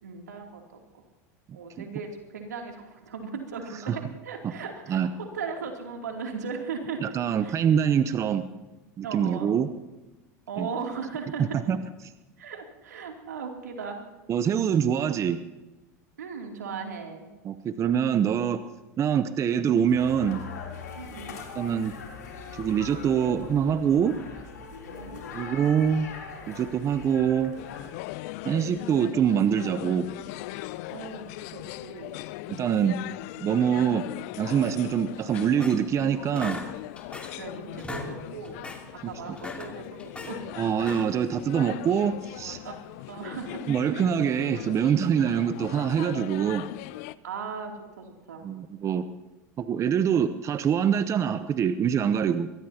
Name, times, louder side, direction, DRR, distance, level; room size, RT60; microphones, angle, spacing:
voice 1, 0.0-1.0 1.5-5.1 5.3-7.1 7.4-7.5 9.0-9.5 10.5-11.6 12.4-14.0 16.2-17.3 20.9-21.4 24.8-25.2 30.9-32.2 33.1-33.2 37.3-40.6 42.6-42.8 43.1-43.6 47.2-48.5, right 5 dB, 90° right, 2 dB, 2.8 m, -37 dB
voice 2, 7.0-8.5 9.0-9.7 10.6-10.7 11.7-11.8 14.3-15.4 17.4-18.6 19.0-20.4 21.6-21.9 22.6-24.1 25.3-26.1 26.5-27.5 28.4-30.1 32.5-33.0 33.4-34.1 34.4-36.6 39.0-39.1 40.6-42.6 43.7-46.7 48.4-49.0 49.6-52.5, right 8 dB, 35° right, 11 dB, 0.8 m, -24 dB
sound 1, 19.9-27.9, left 5 dB, 85° left, 3.3 m, -41 dB
sound 2, 27.6-47.1, left 17 dB, 65° left, 0.5 m, -39 dB
sound 3, 35.3-36.0 36.4-37.5 37.7-38.1 38.4-38.8 39.3-40.4 40.8-41.3, left 2 dB, 15° left, 2.5 m, -39 dB
22.5 x 18.5 x 2.9 m, 1.1 s
hypercardioid pair, 95°, 9 cm